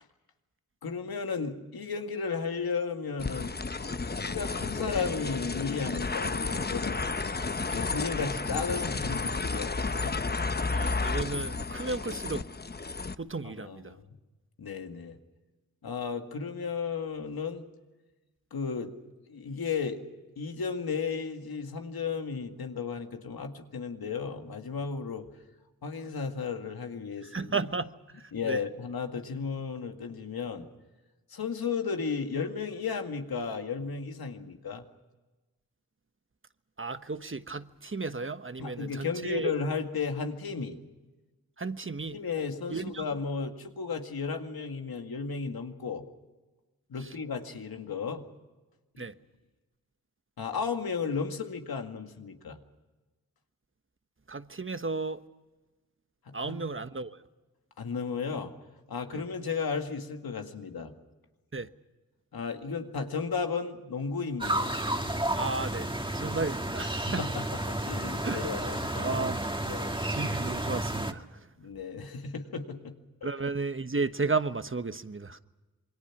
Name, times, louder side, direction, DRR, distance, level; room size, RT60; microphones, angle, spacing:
voice 1, 0.8-3.5 4.2-7.0 7.7-10.2 13.4-14.1 14.6-15.2 15.8-17.6 18.5-18.9 19.3-20.0 20.4-25.2 25.8-27.5 28.3-30.7 31.3-34.8 38.6-40.8 42.1-46.0 46.9-48.3 49.0-49.1 50.4-52.6 56.3-56.6 57.8-58.5 58.9-60.9 62.3-64.8 67.2-69.2 69.7-70.2 71.6-73.3, left 5 dB, 90° left, 2.1 m, -34 dB
sound 1, 3.2-13.2, left 3 dB, 25° left, 0.8 m, -32 dB
voice 2, 10.7-12.5 13.2-13.9 27.3-28.6 36.8-39.5 41.6-42.2 42.7-43.0 47.0-47.1 49.0-49.1 54.3-55.2 56.3-57.2 59.1-59.2 61.5-61.7 65.4-67.2 68.2-68.6 69.0-69.5 70.1-71.4 73.2-75.4, right 3 dB, 35° right, 1.2 m, -34 dB
sound 2, 64.4-71.1, right 1 dB, 15° right, 2.1 m, -31 dB
27.5 x 22.0 x 6.0 m
cardioid pair, 40°, 36 cm